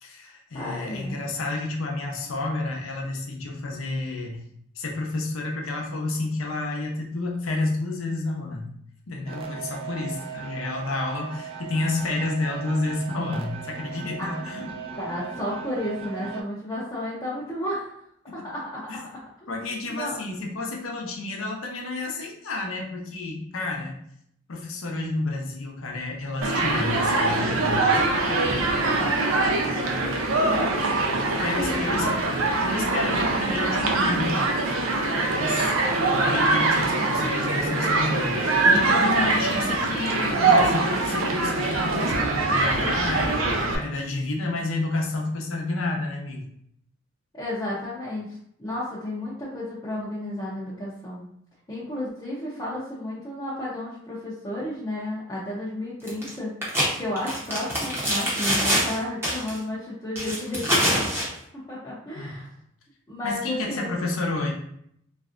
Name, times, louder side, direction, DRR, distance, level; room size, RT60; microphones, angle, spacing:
voice 1, 0.0-4.4 4.8-8.7 9.1-14.7 18.3-18.4 18.9-19.0 19.5-24.0 24.5-28.1 31.4-32.1 32.6-34.5 35.0-43.4 43.7-46.5 62.2-62.5 63.2-64.5, left 2 dB, 85° left, 1 dB, 0.7 m, -30 dB
voice 2, 0.5-1.2 14.2-14.4 15.0-17.9 18.3-19.0 19.9-20.2 28.7-30.1 31.3-32.2 47.3-51.3 51.7-56.5 57.0-61.2 61.5-62.5 63.1-63.9, left 1 dB, 20° left, -9 dB, 0.6 m, -32 dB
sound 1, 9.3-16.4, right 7 dB, 30° right, 0.3 m, -38 dB
Human group actions, 26.4-43.8, right 2 dB, 85° right, 0.5 m, -23 dB
sound 2, 56.1-56.3 56.6-59.0 59.2-59.6 60.2-61.3, equal, 10° right, 0.8 m, -24 dB
3.2 x 2.5 x 2.5 m, 0.69 s
head